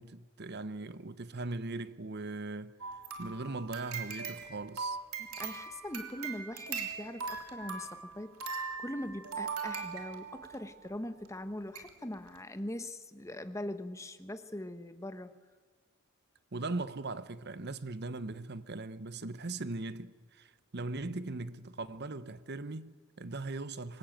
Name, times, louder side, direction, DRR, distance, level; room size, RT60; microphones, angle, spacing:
voice 1, 0.0-2.7 3.2-5.0 16.5-24.0, right 2 dB, 50° right, 0.9 m, -39 dB
sound 1, 2.8-10.6 11.3-11.4 11.8-11.9 12.3-12.4, right 5 dB, 90° right, 3.2 m, -40 dB
voice 2, 5.2-15.3, left 1 dB, 15° left, 1.3 m, -41 dB
26.5 x 22.0 x 9.1 m
head